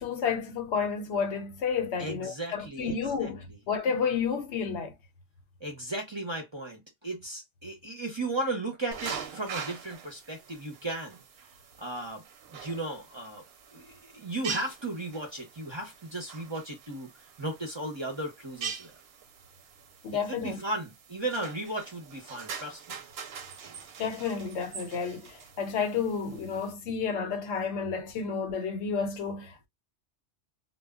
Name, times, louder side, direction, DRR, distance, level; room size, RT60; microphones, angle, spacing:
voice 1, 0.0-4.9 20.0-20.6 24.0-29.7, left 6 dB, 80° left, 0.9 m, -31 dB
voice 2, 2.0-3.3 5.6-11.2 11.8-12.2 12.5-13.4 13.7-17.1 17.4-18.9 20.3-23.0 23.6-23.7, right 2 dB, 30° right, 0.6 m, -35 dB
sound 1, 8.9-26.7, right 6 dB, 65° right, 0.8 m, -43 dB
2.1 x 2.1 x 3.4 m
omnidirectional pair, 1.2 m